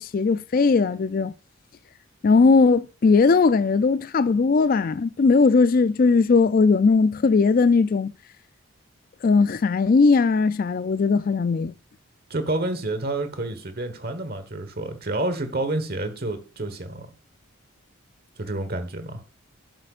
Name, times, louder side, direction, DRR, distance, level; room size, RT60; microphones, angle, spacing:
voice 1, 0.0-1.3 2.2-8.1 9.2-11.7, left 4 dB, 40° left, 0.3 m, -19 dB
voice 2, 12.3-17.1 18.4-19.2, right 2 dB, 45° right, 1.3 m, -29 dB
12.0 x 7.7 x 2.5 m
head